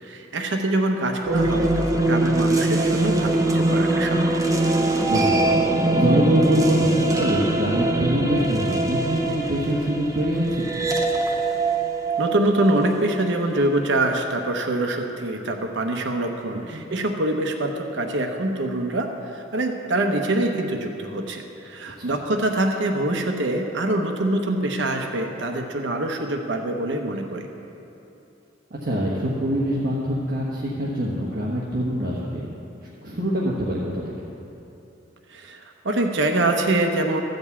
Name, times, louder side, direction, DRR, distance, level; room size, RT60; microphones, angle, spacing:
voice 1, 0.0-4.4 12.2-27.5 35.3-37.2, right 1 dB, 75° right, 3 dB, 0.9 m, -24 dB
sound 1, 1.2-13.4, right 2 dB, 20° right, 0.8 m, -22 dB
voice 2, 5.1-10.9 16.7-16.8 22.0-22.2 28.7-32.5 33.0-34.0, equal, 50° right, -6 dB, 1.3 m, -24 dB
13.5 x 5.3 x 8.2 m, 2.8 s
head